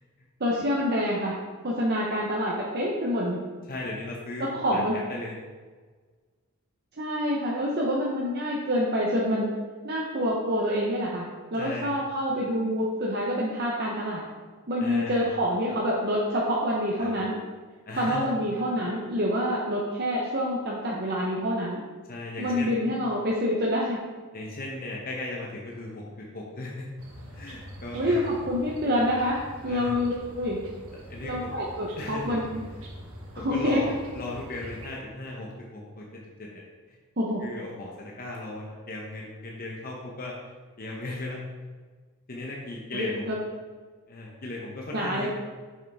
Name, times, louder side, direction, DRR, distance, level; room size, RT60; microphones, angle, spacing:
voice 1, 0.4-1.4 1.6-3.4 4.5-4.9 7.0-9.5 9.8-14.2 14.7-17.3 17.9-21.8 22.4-24.0 27.9-30.6 31.2-32.6 33.4-33.8 37.2-37.4 42.9-43.4 44.9-45.3, equal, 50° right, -4 dB, 0.9 m, -27 dB
voice 2, 3.7-5.3 11.6-11.9 14.8-15.3 17.0-17.1 17.9-18.3 22.1-22.8 24.3-26.9 27.3-28.3 29.7-29.9 31.1-31.5 32.0-32.4 33.4-33.9 34.1-37.0 37.4-41.4 42.3-43.3 44.1-45.3, left 2 dB, 45° left, -2 dB, 0.8 m, -37 dB
sound 1, 27.0-34.9, equal, 75° right, 1.4 m, -44 dB
6.6 x 6.1 x 3.5 m, 1.4 s
head